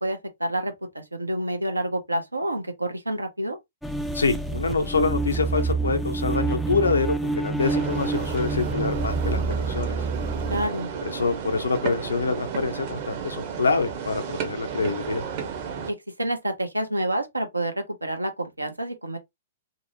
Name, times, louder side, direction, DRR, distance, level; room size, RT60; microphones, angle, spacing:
voice 1, 0.0-3.6 10.5-10.9 15.8-19.2, right 1 dB, 85° right, 0.7 m, -28 dB
sound 1, 3.8-10.7, right 3 dB, ahead, 0.4 m, -27 dB
voice 2, 4.1-9.4 9.7-10.0 11.0-15.2, left 4 dB, 70° left, 0.7 m, -26 dB
sound 2, 7.6-15.9, right 7 dB, 40° right, 0.8 m, -33 dB
2.8 x 2.1 x 2.7 m
figure-of-eight pair, 110°, 0 cm